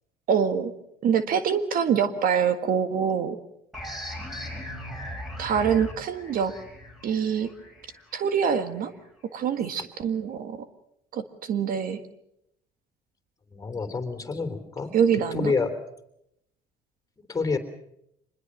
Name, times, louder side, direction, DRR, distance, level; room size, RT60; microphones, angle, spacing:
voice 1, 0.3-0.7 1.0-3.4 5.4-6.5 7.0-7.5 8.1-8.9 9.3-10.7 11.1-12.0 14.9-15.5, right 7 dB, 55° right, 10 dB, 1.7 m, -25 dB
sound 1, 3.7-9.1, equal, ahead, 5.3 m, -39 dB
voice 2, 13.5-14.9 15.3-15.8 17.3-17.6, left 4 dB, 20° left, 8 dB, 3.4 m, -28 dB
25.0 x 21.0 x 6.4 m, 0.77 s
cardioid pair, 105°, 17 cm